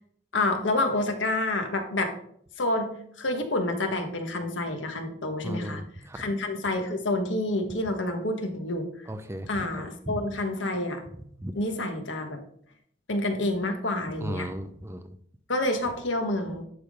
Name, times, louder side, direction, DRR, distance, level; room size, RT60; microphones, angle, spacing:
voice 1, 0.3-2.1 2.6-5.8 6.1-8.9 9.5-11.0 11.5-12.4 13.1-14.5 15.5-16.6, left 2 dB, 85° left, 5 dB, 1.3 m, -28 dB
voice 2, 5.4-6.2 9.1-9.5 9.7-10.3 11.4-11.6 14.2-15.2, equal, 15° right, 9 dB, 0.5 m, -36 dB
11.0 x 3.8 x 5.0 m, 0.64 s
head